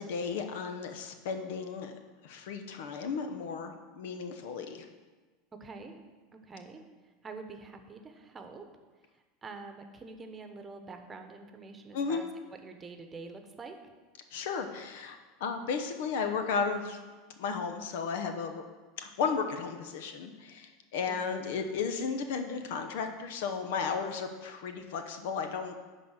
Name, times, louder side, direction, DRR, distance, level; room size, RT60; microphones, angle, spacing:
voice 1, 0.0-1.9 2.2-4.9 11.9-12.2 14.3-17.0 17.4-18.6 19.0-25.7, left 5 dB, 70° left, 7 dB, 0.9 m, -34 dB
voice 2, 5.6-5.9 6.5-6.8 7.2-8.6 9.4-12.3 12.6-13.8 21.1-21.2, right 4 dB, 25° right, 6 dB, 1.1 m, -46 dB
11.0 x 4.0 x 6.4 m, 1.3 s
hypercardioid pair, 95°, 0 cm